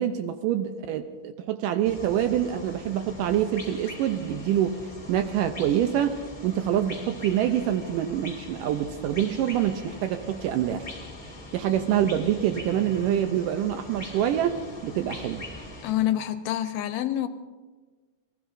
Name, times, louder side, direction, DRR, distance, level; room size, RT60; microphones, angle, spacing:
voice 1, 0.0-10.9 11.5-15.5, right 10 dB, 80° right, 8 dB, 1.9 m, -26 dB
sound 1, 1.8-15.9, left 1 dB, 15° left, 2.1 m, -42 dB
voice 2, 15.8-17.3, left 12 dB, 80° left, 9 dB, 2.7 m, -27 dB
27.5 x 19.5 x 2.6 m, 1.3 s
omnidirectional pair, 4.6 m